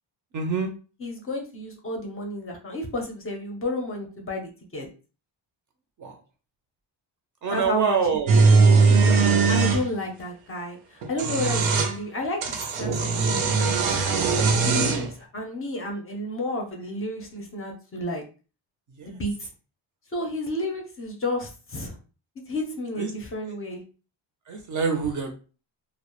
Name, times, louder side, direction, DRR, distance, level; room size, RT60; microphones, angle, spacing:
voice 1, 0.3-0.7 6.0-6.1 7.4-8.3 23.0-23.1 24.5-25.3, right 5 dB, 40° right, 3 dB, 0.4 m, -25 dB
voice 2, 1.0-4.9 7.5-8.0 8.9-9.2 9.5-18.2 19.0-19.5 20.1-22.0 22.5-23.8, left 1 dB, 30° left, 1 dB, 0.5 m, -32 dB
sound 1, 8.3-9.8 11.0-11.9 12.4-15.1, right 4 dB, 90° right, 0.6 m, -20 dB
2.2 x 2.0 x 2.9 m, 0.34 s
cardioid pair, 155°, 47 cm